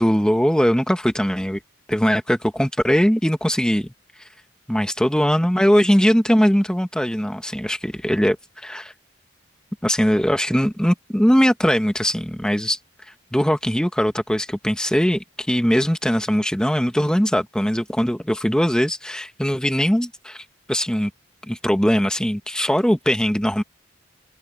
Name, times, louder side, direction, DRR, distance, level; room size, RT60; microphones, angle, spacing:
voice 1, 0.0-1.6 1.9-3.9 4.7-8.9 9.8-12.8 13.3-21.1 21.5-23.6, equal, 5° left, 1.2 m, -20 dB
head